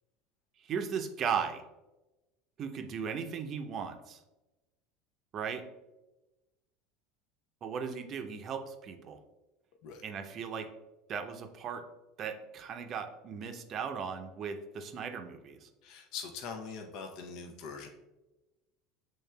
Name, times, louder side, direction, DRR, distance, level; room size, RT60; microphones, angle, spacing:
voice 1, 0.6-1.6 2.6-4.2 5.3-5.6 7.6-9.2 10.0-10.7 11.1-11.8 12.2-15.7, right 6 dB, 45° right, 6 dB, 0.6 m, -37 dB
voice 2, 15.8-17.9, left 5 dB, 60° left, 4 dB, 0.6 m, -42 dB
7.2 x 3.1 x 2.2 m, 1.0 s
hypercardioid pair, 80°, 0 cm